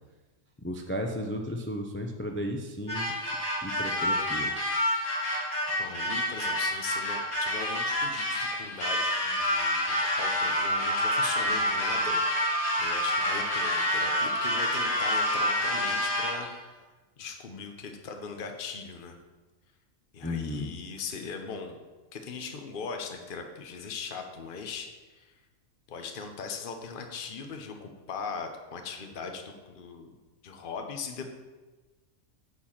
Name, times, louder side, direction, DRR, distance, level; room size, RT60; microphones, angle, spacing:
voice 1, 0.6-3.1 3.6-4.6 20.2-20.7, left 1 dB, 15° left, 3 dB, 0.4 m, -34 dB
sound 1, 2.9-16.6, left 1 dB, 80° left, 3.4 m, -28 dB
voice 2, 5.8-12.2 12.8-16.9 17.2-19.2 20.1-21.8 22.1-25.3 25.9-30.1 30.4-31.3, left 5 dB, 40° left, 4 dB, 1.0 m, -39 dB
9.4 x 4.5 x 7.4 m, 1.2 s
omnidirectional pair, 1.5 m